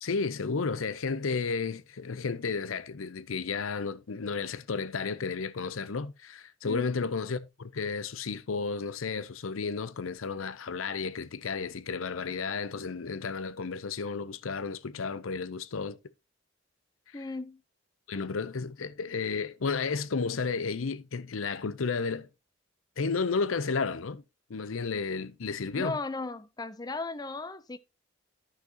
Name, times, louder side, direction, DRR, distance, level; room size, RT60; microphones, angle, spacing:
voice 1, 0.0-16.0 17.1-17.2 18.1-22.3 23.0-24.2 24.5-26.0, left 4 dB, 85° left, 0.6 m, -32 dB
voice 2, 17.1-17.6 25.8-27.8, left 3 dB, 20° left, 0.5 m, -36 dB
13.5 x 5.9 x 2.9 m
head